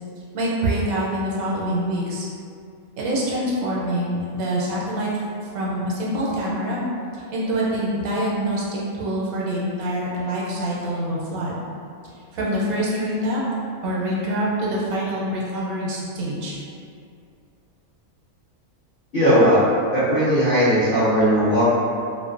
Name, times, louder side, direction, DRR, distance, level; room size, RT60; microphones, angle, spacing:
voice 1, 0.3-2.3 3.0-5.1 5.5-6.8 7.1-11.6 12.3-13.4 13.8-16.6, right 1 dB, 80° right, -5 dB, 1.0 m, -25 dB
voice 2, 19.1-19.6 19.9-21.6, equal, 55° left, -12 dB, 0.6 m, -17 dB
2.5 x 2.1 x 2.4 m, 2.4 s
omnidirectional pair, 1.5 m